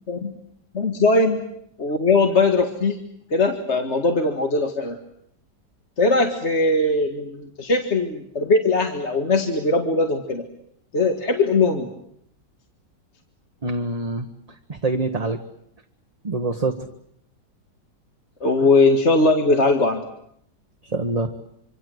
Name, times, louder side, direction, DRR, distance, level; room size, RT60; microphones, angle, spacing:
voice 1, 0.7-1.4 1.8-3.0 3.3-5.0 6.0-10.5 10.9-11.9 18.4-20.0, left 3 dB, 40° left, 5 dB, 2.0 m, -20 dB
voice 2, 13.6-14.3 14.7-15.4 16.2-16.8 20.8-21.3, right 2 dB, 25° right, 6 dB, 1.2 m, -25 dB
26.0 x 26.0 x 7.8 m, 0.72 s
omnidirectional pair, 1.9 m